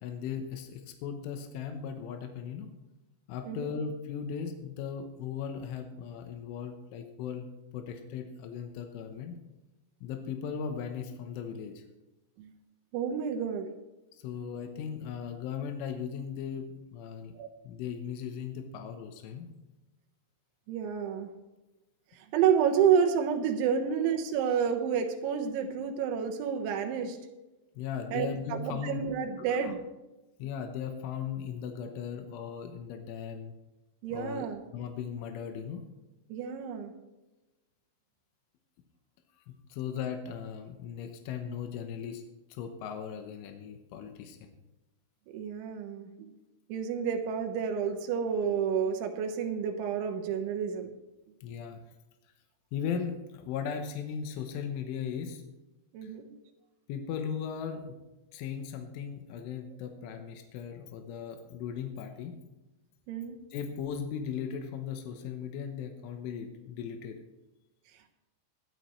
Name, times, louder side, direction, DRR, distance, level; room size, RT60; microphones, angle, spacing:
voice 1, 0.0-2.7 3.3-7.5 7.7-9.4 10.0-11.8 14.1-17.3 17.7-19.5 27.8-29.0 29.4-29.7 30.4-33.5 34.1-34.5 34.7-35.9 39.5-42.2 42.5-44.5 51.4-51.8 52.7-55.4 56.0-56.1 56.9-58.0 58.3-62.4 63.5-67.2, left 7 dB, 85° left, 5 dB, 3.6 m, -37 dB
voice 2, 12.9-13.7 17.4-17.5 20.7-21.3 22.1-27.2 28.1-29.8 34.0-34.6 36.3-36.9 45.3-46.3 46.7-50.9 55.9-56.3 63.1-63.4, right 7 dB, 80° right, 4 dB, 3.5 m, -29 dB
19.0 x 11.5 x 3.2 m, 1.0 s
omnidirectional pair, 5.5 m